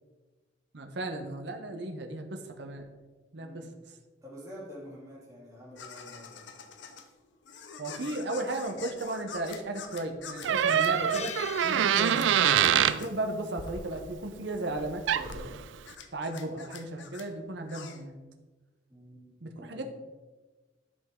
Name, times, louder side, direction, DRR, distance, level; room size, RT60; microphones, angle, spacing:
voice 1, 0.7-2.9 3.3-3.7 7.8-11.3 11.6-12.3 12.8-15.6 16.1-18.2 19.4-19.8, right 2 dB, 60° right, 4 dB, 0.9 m, -35 dB
voice 2, 3.4-3.8 4.2-6.4 18.9-19.8, equal, 15° right, -6 dB, 2.7 m, -48 dB
sound 1, 5.8-18.0, left 5 dB, 70° left, 0.7 m, -45 dB
sound 2, 9.5-9.9 10.2-10.3 10.7-12.6 12.8-13.1 14.3-14.6, left 8 dB, 35° left, 0.6 m, -43 dB
Door, 10.4-13.0 14.8-14.9 15.1-15.4, right 9 dB, 80° right, 0.4 m, -24 dB
11.0 x 5.3 x 3.7 m, 1.3 s
head